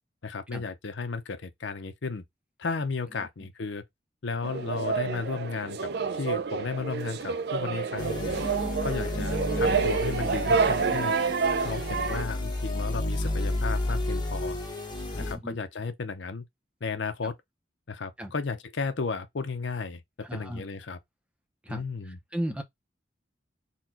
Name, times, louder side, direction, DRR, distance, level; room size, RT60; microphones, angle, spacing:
voice 1, 0.2-2.2 2.6-3.8 4.2-8.4 8.8-11.1 11.6-14.6 15.1-16.4 16.8-17.4 17.9-21.0 21.7-22.2, left 4 dB, 85° left, 0.7 m, -34 dB
sound 1, 4.4-12.2, right 5 dB, 60° right, 0.4 m, -28 dB
sound 2, 8.0-15.3, left 1 dB, 25° left, 1.2 m, -31 dB
voice 2, 15.2-15.6 18.2-18.3 20.3-20.6 21.7-21.8 22.3-22.6, equal, 5° right, 0.7 m, -34 dB
4.2 x 2.3 x 4.3 m
head